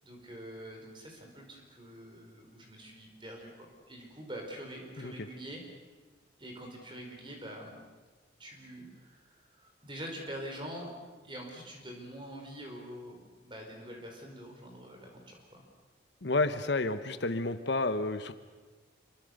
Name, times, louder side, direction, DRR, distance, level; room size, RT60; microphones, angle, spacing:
voice 1, 0.0-5.6 6.4-7.8 8.4-10.9 11.2-15.6, equal, 25° right, 2 dB, 5.0 m, -45 dB
voice 2, 16.2-18.3, left 2 dB, 65° left, 10 dB, 1.1 m, -30 dB
27.0 x 23.5 x 6.7 m, 1.3 s
head